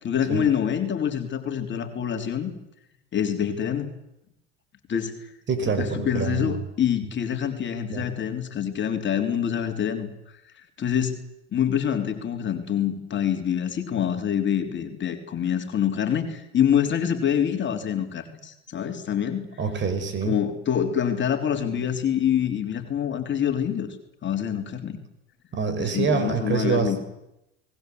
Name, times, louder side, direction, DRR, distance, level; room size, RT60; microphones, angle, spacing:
voice 1, 0.0-2.5 3.1-3.9 4.9-5.1 5.7-10.1 10.8-11.2 11.5-19.5 20.2-23.9 24.2-25.0 25.8-27.0, left 9 dB, 35° left, 6 dB, 3.4 m, -26 dB
voice 2, 5.5-6.6 7.9-8.1 19.6-20.4 25.5-27.0, right 5 dB, 35° right, 10 dB, 5.3 m, -26 dB
28.0 x 20.0 x 8.0 m, 0.88 s
hypercardioid pair, 75°, 31 cm